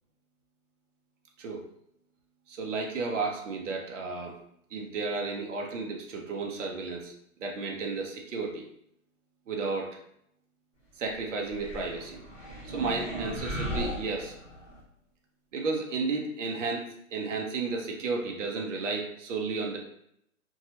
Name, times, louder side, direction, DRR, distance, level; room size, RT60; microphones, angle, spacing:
voice 1, 2.5-4.4 4.7-7.1 7.4-8.6 9.5-10.0 11.0-12.2 12.6-14.3 15.5-19.8, right 4 dB, 55° right, 1 dB, 0.6 m, -33 dB
sound 1, 11.4-14.8, right 1 dB, 10° left, 0.8 m, -37 dB
2.6 x 2.3 x 2.9 m, 0.74 s
hypercardioid pair, 170°, 44 cm